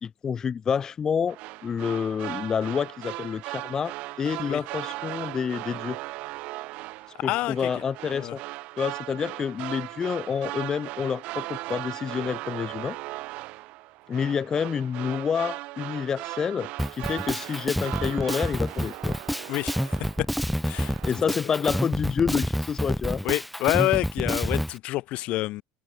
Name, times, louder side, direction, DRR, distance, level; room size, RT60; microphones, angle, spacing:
voice 1, 0.0-6.0 7.2-8.4 8.8-13.0 14.1-19.2 21.0-23.2, left 7 dB, 25° left, 0.9 m, -28 dB
sound 1, 1.3-20.4 20.7-21.2, right 21 dB, 60° right, 2.0 m, -38 dB
voice 2, 7.2-7.6 8.1-8.3 19.5-19.8 20.2-20.3 20.7-20.9 23.2-25.6, left 18 dB, 55° left, 1.3 m, -27 dB
Drum kit, 16.8-24.7, equal, ahead, 0.4 m, -28 dB
supercardioid pair, 130°, 2 cm